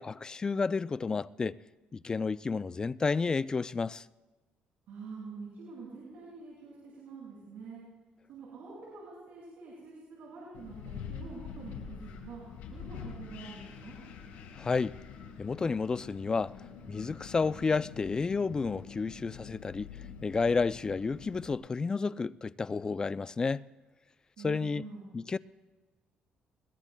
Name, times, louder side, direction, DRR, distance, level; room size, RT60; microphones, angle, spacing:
voice 1, 0.0-1.6 1.9-4.1 14.6-15.0 15.4-16.5 16.9-19.9 20.2-23.7 24.4-24.8 25.1-25.4, left 4 dB, 25° left, 0.3 m, -31 dB
voice 2, 4.9-7.8 8.3-12.4 12.7-14.0 24.4-25.1, right 4 dB, 75° right, 5.9 m, -46 dB
Wind, 10.5-21.5, left 7 dB, 85° left, 3.0 m, -46 dB
22.0 x 21.0 x 2.3 m
cardioid pair, 105°, 3 cm